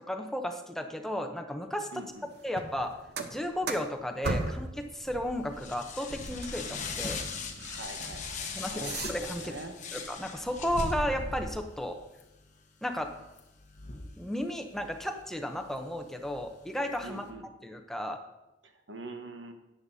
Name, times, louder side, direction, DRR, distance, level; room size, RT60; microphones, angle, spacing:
voice 1, 0.1-1.9 2.4-2.9 3.3-7.2 8.6-9.5 9.9-12.0 12.8-13.1 14.2-17.2 17.6-18.2, left 1 dB, ahead, 4 dB, 0.7 m, -34 dB
voice 2, 1.9-2.3 7.6-9.8 17.0-17.4 18.6-19.5, right 2 dB, 90° right, 6 dB, 1.2 m, -44 dB
sound 1, 2.5-4.8 5.0-9.6 10.0-11.5, right 2 dB, 60° right, 0.9 m, -38 dB
sound 2, 4.9-17.3, left 5 dB, 40° left, 1.1 m, -42 dB
13.5 x 9.6 x 2.7 m, 0.95 s
head